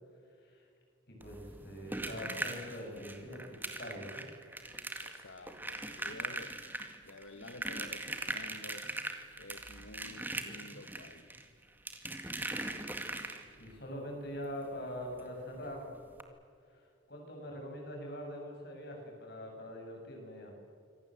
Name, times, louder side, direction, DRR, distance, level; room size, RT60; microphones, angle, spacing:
voice 1, 1.1-4.3 13.6-15.9 16.7-20.5, equal, 50° left, 1 dB, 7.9 m, -43 dB
sound 1, 1.2-13.7 15.2-15.3 15.6-15.7 16.1-16.2, right 2 dB, 10° right, 2.0 m, -41 dB
voice 2, 5.0-6.6 7.0-8.9 9.4-11.4, left 2 dB, 80° left, 7 dB, 1.3 m, -51 dB
27.0 x 25.0 x 8.0 m, 2.3 s
head